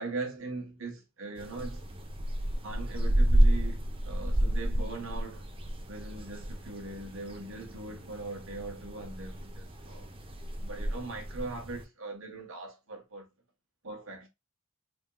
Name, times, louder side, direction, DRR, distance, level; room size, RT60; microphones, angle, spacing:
voice 1, 0.0-1.8 2.6-5.4 5.9-10.1 10.6-13.3 13.8-14.3, right 3 dB, 65° right, 1.2 m, -40 dB
sound 1, 1.4-11.8, right 1 dB, 25° right, 0.6 m, -30 dB
4.2 x 3.6 x 2.2 m
head